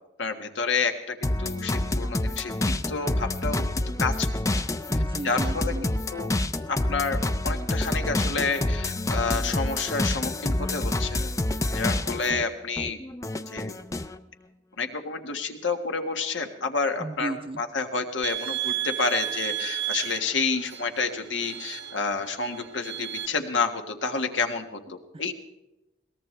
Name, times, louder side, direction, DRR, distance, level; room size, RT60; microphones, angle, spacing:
voice 1, 0.2-3.6 4.0-4.3 5.2-6.3 6.7-7.2 7.4-11.2 11.7-13.0 13.5-13.7 14.8-25.3, left 4 dB, 90° left, 5 dB, 1.7 m, -29 dB
sound 1, 1.2-12.4 12.8-14.1, left 1 dB, 15° left, 0.5 m, -27 dB
voice 2, 4.9-6.0 17.0-17.6 25.1-25.3, right 2 dB, 30° right, 10 dB, 0.7 m, -35 dB
sound 2, 18.2-23.3, right 12 dB, 80° right, 1.6 m, -33 dB
22.0 x 18.0 x 3.3 m, 0.96 s
head